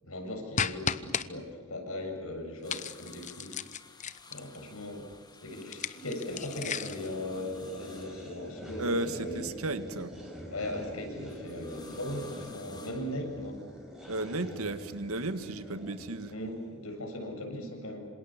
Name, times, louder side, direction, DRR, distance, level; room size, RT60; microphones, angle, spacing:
voice 1, 0.0-3.6 4.3-5.1 5.4-9.4 10.5-13.6 16.3-18.1, left 1 dB, 85° left, 3 dB, 7.6 m, -38 dB
sound 1, 0.6-1.3 2.7-4.6 5.6-7.1, left 7 dB, 35° left, 0.8 m, -34 dB
sound 2, 2.6-8.9 11.3-13.8 14.8-15.6 17.0-17.1, left 4 dB, 20° left, 2.1 m, -54 dB
sound 3, 6.2-16.7, equal, ahead, 5.3 m, -45 dB
voice 2, 8.8-10.2 14.1-16.3, right 2 dB, 90° right, 10 dB, 1.9 m, -34 dB
27.5 x 27.0 x 7.6 m, 1.5 s
head